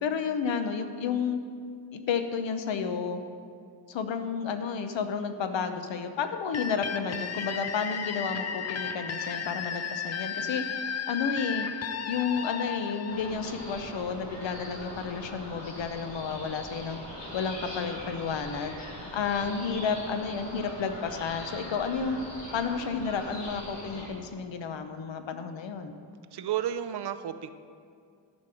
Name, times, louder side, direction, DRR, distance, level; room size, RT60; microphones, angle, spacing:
voice 1, 0.0-1.4 1.9-3.2 3.9-10.6 11.1-11.7 12.1-17.0 17.3-18.8 19.1-22.2 22.5-25.9, left 6 dB, 90° left, 8 dB, 0.9 m, -31 dB
sound 1, 6.5-14.1, left 7 dB, 40° left, 0.4 m, -34 dB
sound 2, 13.1-24.1, left 1 dB, 70° left, 2.7 m, -41 dB
voice 2, 26.3-27.5, right 10 dB, 65° right, 11 dB, 0.6 m, -32 dB
12.0 x 5.3 x 6.9 m, 2.3 s
wide cardioid pair, 165°, 44 cm